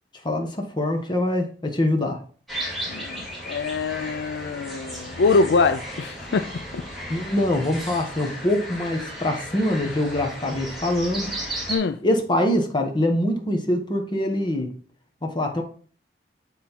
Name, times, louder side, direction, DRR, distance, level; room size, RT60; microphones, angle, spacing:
voice 1, 0.2-2.2 7.1-11.3 12.0-14.7 15.2-15.6, left 1 dB, 25° left, 1.2 m, -24 dB
sound 1, 2.5-11.8, equal, ahead, 2.5 m, -35 dB
voice 2, 2.9-6.5 6.7-6.8 11.7-12.0, left 4 dB, 70° left, 0.4 m, -23 dB
7.6 x 4.2 x 4.4 m
head